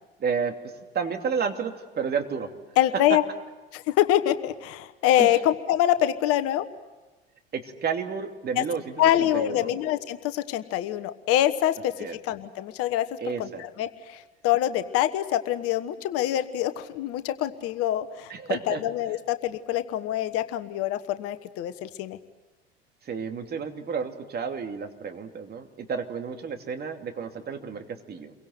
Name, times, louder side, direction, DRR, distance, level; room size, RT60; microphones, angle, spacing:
voice 1, 0.2-0.5 0.9-2.5 5.2-5.4 7.5-9.7 12.0-12.2 13.2-13.7 18.3-18.8 23.0-28.3, right 6 dB, 30° right, 5 dB, 2.8 m, -31 dB
voice 2, 2.8-3.2 3.7-6.7 8.6-8.7 9.0-13.1 13.4-22.2, left 12 dB, 50° left, 11 dB, 1.3 m, -25 dB
29.0 x 23.5 x 8.1 m, 1.2 s
figure-of-eight pair, 70°, 31 cm